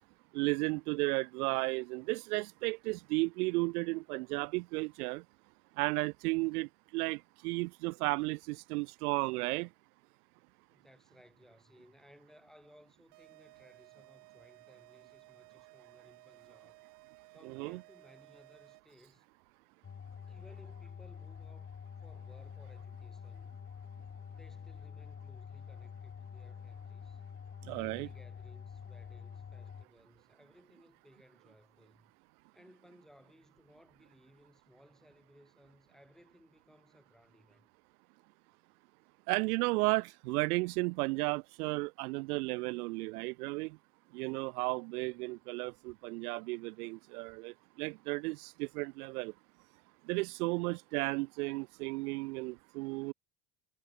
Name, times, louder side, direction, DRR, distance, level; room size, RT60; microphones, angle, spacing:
voice 1, 0.3-5.2 5.8-9.7 17.4-17.8 27.6-28.1 39.3-43.8 44.1-49.3 50.0-53.1, right 25 dB, 85° right, 0.6 m, -34 dB
voice 2, 10.7-16.8 17.3-19.3 20.3-21.7 22.0-23.7 24.3-27.2 27.7-32.1 32.5-37.7 45.0-45.2, equal, ahead, 7.6 m, -62 dB
sound 1, 13.1-19.1, right 20 dB, 65° right, 7.8 m, -59 dB
sound 2, 19.8-29.8, left 7 dB, 25° left, 1.5 m, -47 dB
supercardioid pair, 90°, 44 cm